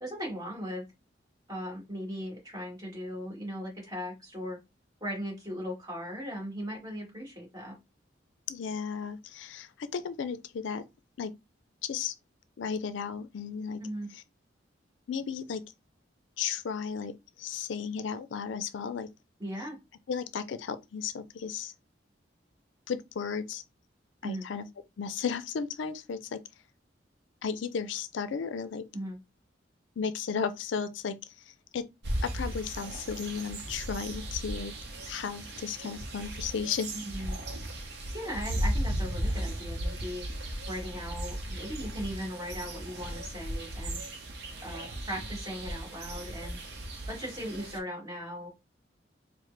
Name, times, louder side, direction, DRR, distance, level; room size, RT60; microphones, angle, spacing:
voice 1, 0.0-0.9 1.5-4.6 5.0-7.8 13.8-14.1 19.4-19.8 24.2-24.5 28.9-29.2 36.9-37.3 38.1-40.3 40.7-44.0 44.6-46.6 47.1-48.5, equal, 20° right, 1.6 m, -38 dB
voice 2, 8.5-10.8 11.2-11.3 11.8-12.1 12.6-13.8 15.1-15.6 16.4-17.1 17.4-19.1 20.1-21.7 22.9-23.6 24.2-24.7 25.0-26.4 27.4-28.8 30.0-31.2 31.7-31.9 32.2-34.7 35.1-36.9, left 6 dB, 75° left, 0.4 m, -34 dB
sound 1, 32.0-47.8, right 1 dB, 60° right, 0.7 m, -36 dB
4.6 x 2.1 x 3.2 m
head